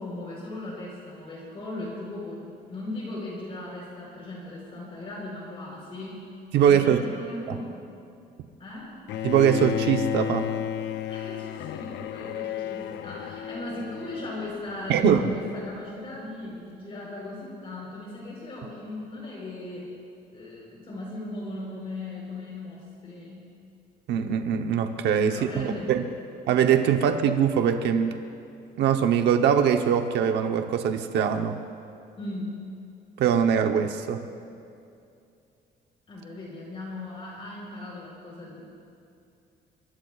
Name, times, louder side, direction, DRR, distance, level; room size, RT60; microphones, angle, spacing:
voice 1, 0.0-6.2 6.6-7.8 8.6-8.9 11.1-19.9 20.3-23.5 25.3-26.0 32.2-32.5 36.1-38.6, left 1 dB, 35° left, -4 dB, 4.1 m, -38 dB
voice 2, 6.5-7.0 9.2-10.5 14.9-15.2 24.1-26.0 26.5-28.2 28.8-31.6 33.2-34.2, right 8 dB, 80° right, 5 dB, 0.9 m, -22 dB
Bowed string instrument, 9.1-15.2, left 10 dB, 80° left, 0.6 m, -32 dB
23.5 x 23.0 x 2.4 m, 2.6 s
cardioid pair, 165°, 18 cm